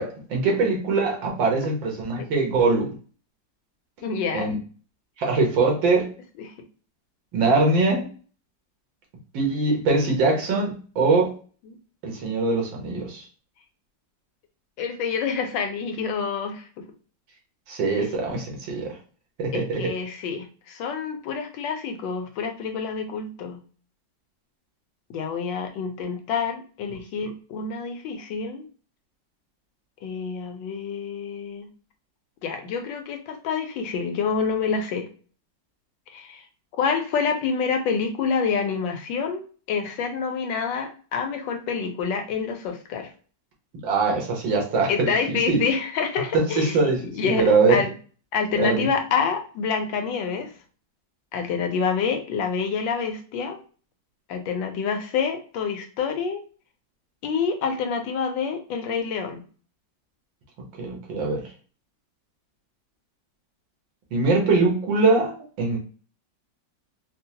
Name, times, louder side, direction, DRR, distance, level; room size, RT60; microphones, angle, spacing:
voice 1, 0.0-2.9 4.3-4.6 5.2-6.1 7.3-8.1 9.3-11.3 12.0-13.2 17.7-18.9 19.4-19.9 43.7-45.6 46.3-47.8 48.6-48.9 60.8-61.4 64.1-65.3 65.6-65.8, right 3 dB, 90° right, 0 dB, 1.8 m, -22 dB
voice 2, 4.0-4.5 6.4-6.5 11.6-11.7 14.8-16.8 18.0-18.2 19.5-23.6 25.1-28.7 30.0-31.7 32.4-35.1 36.1-36.4 36.7-43.1 44.9-47.9 48.3-50.5 51.3-53.6 54.3-56.4 57.2-59.4, left 5 dB, 85° left, 5 dB, 1.4 m, -27 dB
4.5 x 2.0 x 2.8 m, 0.40 s
omnidirectional pair, 2.0 m